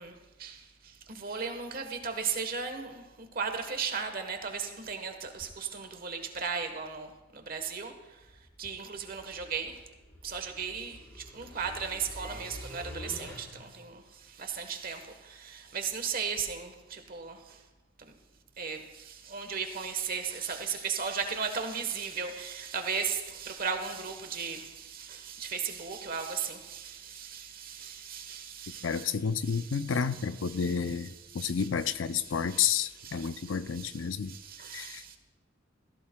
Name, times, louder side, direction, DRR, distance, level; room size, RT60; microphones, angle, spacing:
voice 1, 0.0-8.3 8.6-9.8 10.2-17.6 18.0-18.1 18.6-30.9 31.3-31.7 32.3-32.7 33.0-35.2, right 6 dB, 50° right, 1.2 m, -37 dB
sound 1, 8.2-13.9, equal, 20° left, 4.2 m, -47 dB
voice 2, 28.8-34.4 34.7-35.2, left 6 dB, 75° left, 0.5 m, -31 dB
17.0 x 14.5 x 2.3 m
head